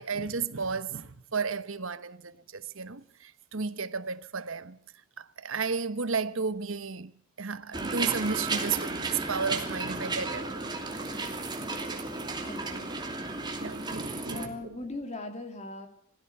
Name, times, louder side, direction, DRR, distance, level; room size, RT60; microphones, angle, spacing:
voice 1, 0.0-4.8 5.2-7.1 7.4-10.5 13.6-14.8, right 5 dB, 70° right, 1.2 m, -33 dB
sound 1, 7.7-14.5, right 3 dB, 20° right, 2.8 m, -34 dB
voice 2, 12.5-12.9 14.3-15.9, left 2 dB, 30° left, 2.8 m, -39 dB
22.0 x 15.5 x 7.9 m
head